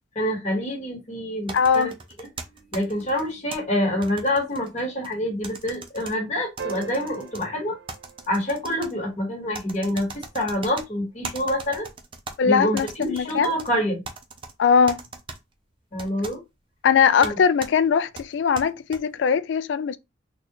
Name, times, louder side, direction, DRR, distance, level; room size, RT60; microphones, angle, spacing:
voice 1, 0.1-1.9 2.2-2.3 2.7-7.8 8.3-10.1 10.3-11.9 12.4-14.0 15.9-16.4 17.2-17.4, left 1 dB, 40° left, 1.4 m, -26 dB
voice 2, 1.5-1.9 12.4-13.5 14.6-15.0 16.8-20.0, left 6 dB, 70° left, 0.3 m, -20 dB
sound 1, 1.5-3.6 4.0-5.1 5.4-6.1 6.6-7.4 7.9-8.9 9.5-10.8 11.2-12.3 12.7-13.7 14.0-14.5 14.9-15.4 16.0-16.3 17.2-17.3 17.6-17.7 18.1-19.0, right 4 dB, 30° right, 0.5 m, -38 dB
sound 2, 6.6-9.1 11.3-11.4, right 7 dB, 70° right, 0.9 m, -39 dB
3.9 x 2.4 x 3.0 m
head